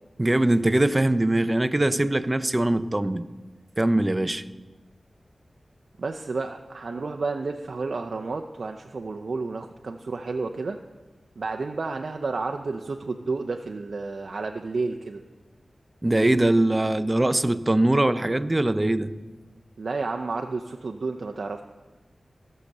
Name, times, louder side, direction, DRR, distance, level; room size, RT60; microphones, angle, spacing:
voice 1, 0.2-3.3 3.8-4.4 16.0-19.1, right 1 dB, 20° right, 13 dB, 0.5 m, -22 dB
voice 2, 6.0-10.8 11.4-15.2 19.8-21.6, right 3 dB, 70° right, 4 dB, 0.6 m, -31 dB
16.5 x 6.6 x 6.6 m, 1.3 s
wide cardioid pair, 80°, 0 cm